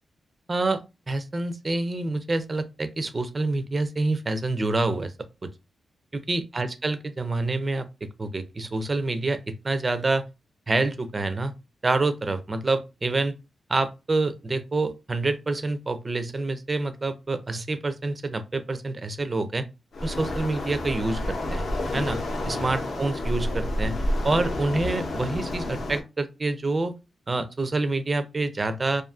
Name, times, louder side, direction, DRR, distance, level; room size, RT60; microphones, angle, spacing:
voice 1, 0.5-5.1 5.4-5.5 6.1-10.2 10.7-11.5 11.8-13.3 13.7-19.7 20.0-21.7 21.9-22.2 22.5-26.9 27.3-29.0, right 2 dB, 25° right, 0.4 m, -27 dB
Waves surf, 19.9-26.0, left 1 dB, 60° left, 0.6 m, -29 dB
2.4 x 2.4 x 2.4 m
wide cardioid pair, 115°, 0 cm